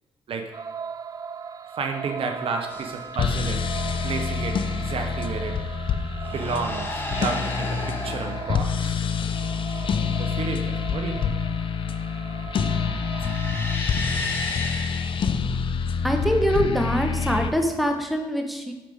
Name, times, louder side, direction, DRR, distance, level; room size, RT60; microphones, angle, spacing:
sound 1, 0.5-13.8, right 6 dB, 35° right, 0.4 m, -38 dB
voice 1, 1.7-3.7 4.0-5.5 6.3-9.0 9.9-11.2, right 4 dB, 60° right, 5 dB, 0.9 m, -31 dB
sound 2, 2.7-3.1 4.7-5.0 6.1-8.6 12.7-15.3 17.2-17.9, left 2 dB, 20° left, 1.3 m, -33 dB
sound 3, 3.1-17.5, left 6 dB, 55° left, 0.6 m, -27 dB
voice 2, 16.0-18.7, equal, ahead, 3 dB, 1.3 m, -24 dB
10.0 x 5.1 x 3.6 m, 1.2 s
supercardioid pair, 60°, 11 cm